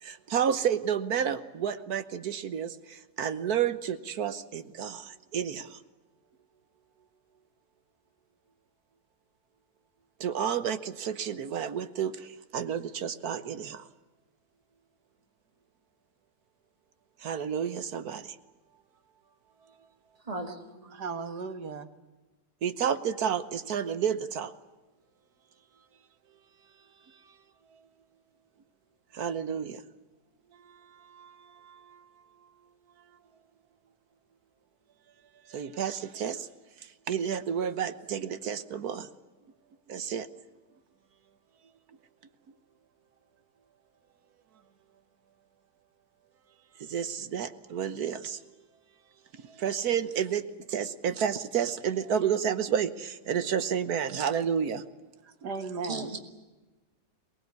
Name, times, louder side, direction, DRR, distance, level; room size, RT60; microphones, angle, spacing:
voice 1, 0.0-5.8 10.2-12.1 12.5-13.8 17.2-18.3 22.6-24.5 29.1-29.8 31.2-31.3 31.7-31.8 35.5-36.5 37.1-39.1 39.9-40.3 46.8-48.4 49.6-50.4 50.7-54.8, right 8 dB, 70° right, 12 dB, 1.5 m, -30 dB
voice 2, 20.2-21.0 55.8-56.2, right 2 dB, 20° right, 4 dB, 2.3 m, -37 dB
voice 3, 20.9-21.9 55.2-56.2, right 4 dB, 85° right, 9 dB, 2.0 m, -36 dB
23.0 x 19.5 x 9.6 m, 1.2 s
omnidirectional pair, 1.7 m